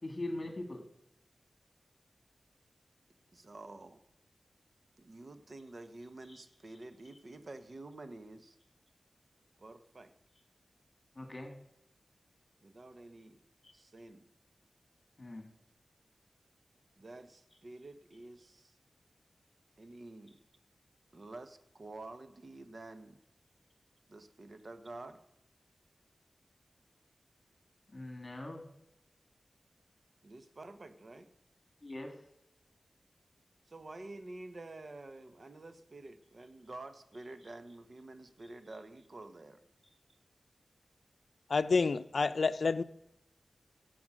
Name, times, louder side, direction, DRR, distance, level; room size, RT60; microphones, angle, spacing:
voice 1, 0.0-0.8 6.3-6.4 11.2-11.6 13.6-13.7 15.2-15.5 27.9-28.7 31.8-32.2, left 1 dB, 35° left, 2.4 m, -41 dB
voice 2, 3.3-4.0 5.0-8.6 9.6-10.1 12.6-13.4 13.7-14.2 17.0-18.7 19.8-20.4 21.1-23.2 24.1-25.2 30.2-31.3 33.7-39.6, right 2 dB, 55° right, 1.2 m, -49 dB
voice 3, 41.5-42.8, left 4 dB, 75° left, 0.5 m, -29 dB
16.5 x 7.0 x 6.3 m
cardioid pair, 45°, 0 cm